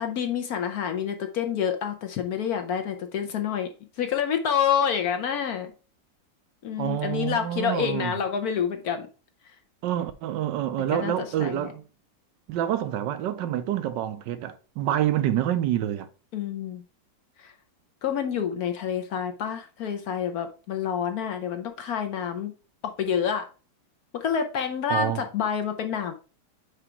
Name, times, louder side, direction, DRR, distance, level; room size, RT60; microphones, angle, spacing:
voice 1, 0.0-5.7 6.6-9.1 10.9-11.7 16.3-16.8 17.4-17.5 18.0-22.5 22.8-23.5 24.1-26.1, left 8 dB, 65° left, 1.0 m, -28 dB
voice 2, 6.8-8.2 9.8-11.8 12.5-16.1 24.9-25.2, right 11 dB, 80° right, 1.2 m, -27 dB
5.0 x 4.7 x 4.3 m
omnidirectional pair, 2.0 m